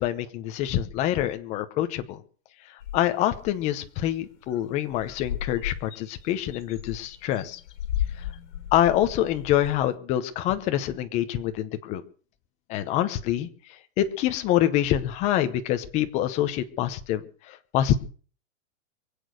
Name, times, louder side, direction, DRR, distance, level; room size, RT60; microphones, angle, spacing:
voice 1, 0.0-2.2 2.9-7.6 8.2-8.3 8.7-12.0 12.7-13.5 14.0-18.0, left 12 dB, 20° left, 9 dB, 0.8 m, -26 dB
sound 1, 2.8-3.6 4.0-4.1 4.3-4.6 4.9-9.9, left 11 dB, 65° left, 2.8 m, -35 dB
23.5 x 8.5 x 6.5 m, 0.43 s
supercardioid pair, 170°, 38 cm